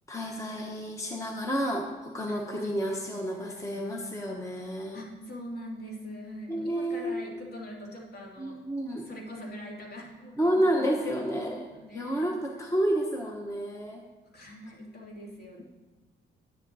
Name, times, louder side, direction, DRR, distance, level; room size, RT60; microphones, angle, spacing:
voice 1, 0.1-5.0 6.5-7.3 8.4-9.0 10.4-14.0, equal, 15° left, 1 dB, 1.0 m, -30 dB
voice 2, 2.7-3.7 4.9-8.6 8.9-12.3 14.3-15.6, equal, 55° left, -3 dB, 2.7 m, -43 dB
11.0 x 10.5 x 2.7 m, 1.2 s
cardioid pair, 90°, 20 cm